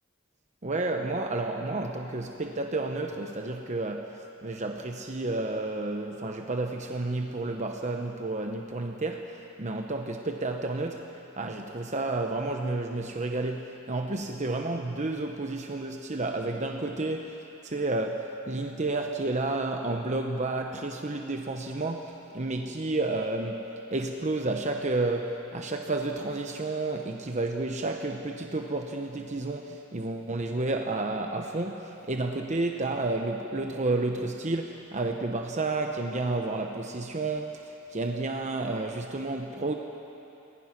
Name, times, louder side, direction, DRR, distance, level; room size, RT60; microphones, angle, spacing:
voice 1, 0.6-39.7, right 2 dB, 35° right, 3 dB, 1.0 m, -31 dB
29.5 x 20.0 x 6.0 m, 2.9 s
head